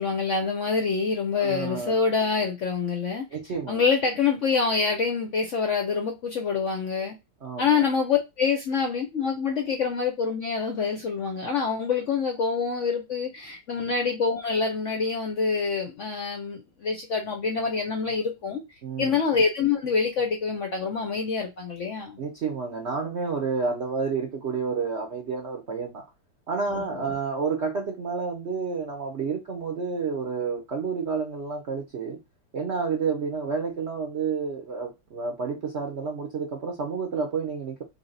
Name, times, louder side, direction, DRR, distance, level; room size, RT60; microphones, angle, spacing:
voice 1, 0.0-3.3 3.7-7.2 7.6-18.6 19.0-22.2 26.7-27.1, left 5 dB, 65° left, 0.7 m, -26 dB
voice 2, 1.4-2.1 3.3-3.9 7.4-7.9 13.8-13.9 18.8-19.2 22.2-26.0 26.5-32.2 32.5-37.8, right 5 dB, 60° right, 0.7 m, -30 dB
3.4 x 2.7 x 3.8 m
omnidirectional pair, 2.0 m